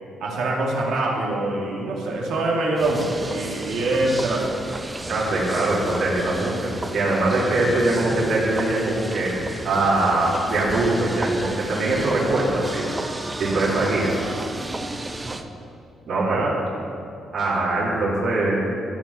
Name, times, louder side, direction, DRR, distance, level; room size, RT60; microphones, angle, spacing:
voice 1, 0.2-4.6 15.2-15.5 16.1-16.5, right 2 dB, 75° right, -2 dB, 2.2 m, -25 dB
sound 1, 2.8-15.4, right 2 dB, 20° right, 0.6 m, -33 dB
voice 2, 5.1-12.8 13.4-14.2 16.1-16.5 17.3-18.6, right 2 dB, 60° right, -6 dB, 3.0 m, -22 dB
13.5 x 5.4 x 6.5 m, 2.6 s
cardioid pair, 90°, 0 cm